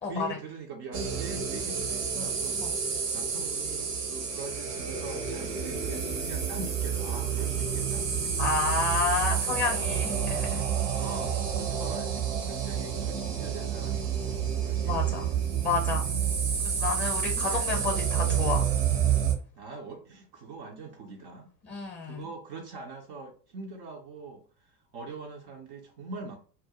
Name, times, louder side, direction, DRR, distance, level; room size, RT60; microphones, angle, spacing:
voice 1, 0.0-8.5 9.3-10.2 11.0-16.5 17.2-18.0 19.6-21.5 22.0-26.4, right 3 dB, 30° right, 3 dB, 0.4 m, -43 dB
sound 1, 0.9-19.4, right 8 dB, 70° right, 0.8 m, -29 dB
voice 2, 8.4-10.7 14.8-15.3 15.6-16.1 16.6-18.7 21.6-22.2, left 4 dB, 20° left, 2 dB, 0.7 m, -30 dB
2.3 x 2.1 x 2.8 m, 0.41 s
figure-of-eight pair, 80°, 49 cm